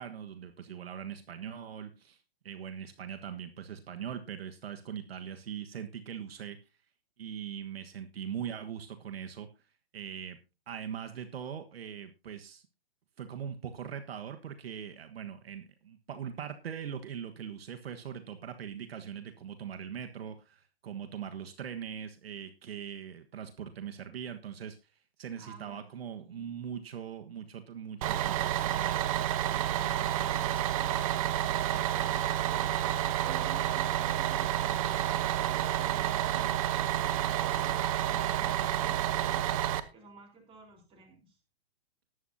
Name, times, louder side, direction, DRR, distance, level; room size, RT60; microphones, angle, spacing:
voice 1, 0.0-2.2 2.4-6.6 7.2-9.5 9.9-10.4 10.7-12.6 13.2-24.8 25.2-29.0, right 8 dB, 70° right, 7 dB, 1.5 m, -41 dB
voice 2, 25.4-26.6 39.9-41.4, right 4 dB, 15° right, 2 dB, 4.0 m, -52 dB
Bus, 28.0-39.8, right 11 dB, 35° right, 0.9 m, -29 dB
19.0 x 8.3 x 2.8 m, 0.29 s
hypercardioid pair, 150°, 31 cm